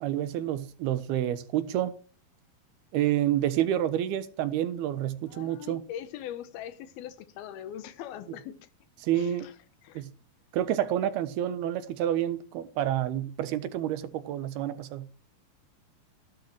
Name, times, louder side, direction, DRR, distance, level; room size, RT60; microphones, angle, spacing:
voice 1, 0.0-2.0 2.9-5.8 9.0-9.5 9.9-10.1 10.5-15.1, right 11 dB, 90° right, 3.2 m, -29 dB
voice 2, 5.3-8.7 9.1-9.6 9.8-10.0, left 10 dB, 80° left, 3.0 m, -41 dB
16.0 x 11.5 x 4.6 m
omnidirectional pair, 4.4 m